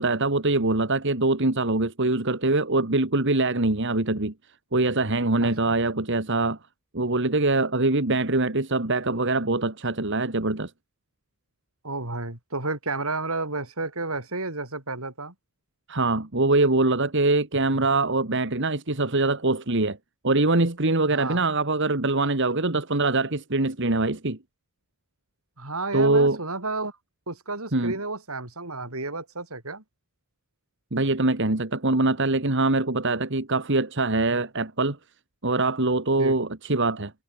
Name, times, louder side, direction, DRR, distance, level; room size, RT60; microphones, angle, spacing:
voice 1, 0.0-4.3 4.7-6.6 6.9-10.7 15.9-20.0 20.2-24.4 25.9-26.4 27.7-28.0 30.9-35.0 35.4-37.1, right 2 dB, 55° right, 2.1 m, -23 dB
voice 2, 5.4-5.7 11.8-15.3 21.1-21.4 25.6-26.9 27.3-29.8 36.2-36.4, right 3 dB, 80° right, 7.5 m, -31 dB
head